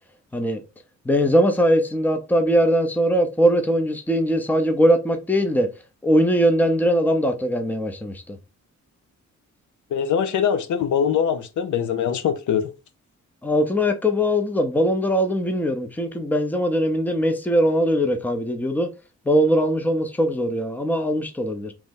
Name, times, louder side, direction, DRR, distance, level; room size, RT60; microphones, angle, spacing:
voice 1, 1.1-5.7 6.0-8.4 13.4-18.9 19.3-21.7, equal, 5° left, 0.6 m, -21 dB
voice 2, 9.9-12.7, left 8 dB, 75° left, 0.6 m, -22 dB
3.1 x 2.7 x 3.6 m
wide cardioid pair, 110°, 30 cm